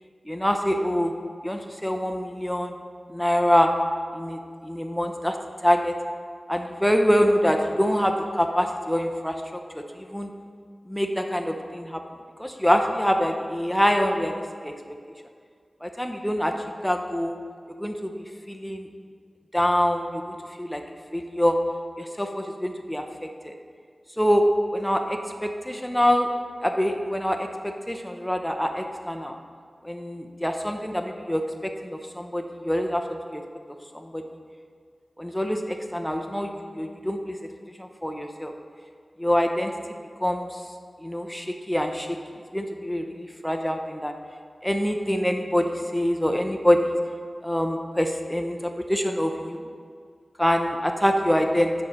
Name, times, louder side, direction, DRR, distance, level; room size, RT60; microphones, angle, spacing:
voice 1, 0.3-1.1 1.4-2.7 3.1-3.7 4.1-5.3 5.6-5.9 6.5-9.4 9.9-10.3 10.9-12.0 12.4-14.7 15.8-16.5 16.8-17.4 17.8-18.9 19.5-20.8 21.1-21.6 22.0-23.5 24.2-26.3 26.6-29.3 29.8-33.0 33.3-33.4 33.9-34.2 35.2-37.4 37.8-38.5 39.2-39.7 40.2-40.6 41.0-42.2 42.5-43.1 43.4-44.1 44.6-46.9 47.4-49.6 50.4-51.7, equal, 5° left, 4 dB, 0.5 m, -25 dB
10.5 x 4.7 x 3.0 m, 2.1 s
wide cardioid pair, 60°, 0 cm